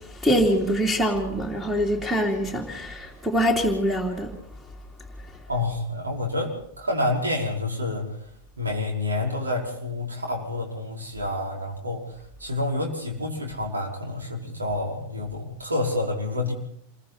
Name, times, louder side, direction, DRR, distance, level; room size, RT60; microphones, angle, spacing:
voice 1, 0.2-4.3, equal, 5° right, 1 dB, 3.2 m, -24 dB
voice 2, 5.5-8.2 8.6-12.1 12.4-16.5, left 2 dB, 75° right, 0 dB, 5.2 m, -28 dB
27.5 x 22.0 x 4.3 m, 0.70 s
figure-of-eight pair, 90°, 0 cm